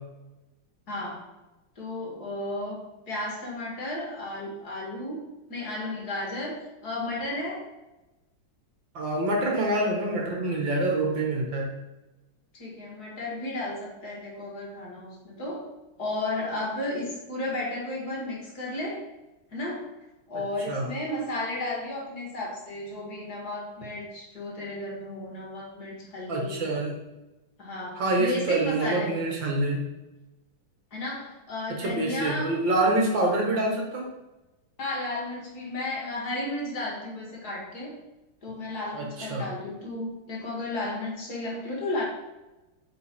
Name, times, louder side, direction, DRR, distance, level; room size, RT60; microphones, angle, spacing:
voice 1, 0.9-1.2 1.8-5.2 5.5-7.6 12.5-15.7 16.0-19.0 19.5-19.9 20.3-26.7 27.6-29.2 30.9-32.6 34.8-38.0 38.4-42.0, left 2 dB, 45° left, -3 dB, 2.2 m, -33 dB
voice 2, 8.9-11.7 20.7-20.9 26.3-27.0 28.0-29.8 31.7-34.1 38.9-39.5, right 2 dB, 60° right, 0 dB, 2.1 m, -26 dB
9.2 x 4.6 x 4.4 m, 1.0 s
omnidirectional pair, 2.3 m